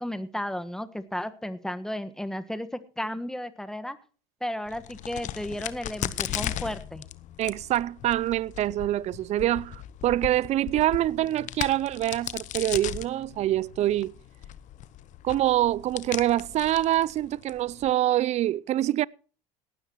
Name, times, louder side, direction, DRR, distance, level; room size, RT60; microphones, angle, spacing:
voice 1, 0.0-4.0 4.4-7.0, left 1 dB, 5° left, 1.4 m, -34 dB
Crack, 4.7-17.9, left 12 dB, 50° left, 0.9 m, -37 dB
voice 2, 7.4-14.2 15.2-19.1, right 13 dB, 45° right, 0.5 m, -25 dB
17.5 x 12.5 x 3.0 m
supercardioid pair, 90°, 16 cm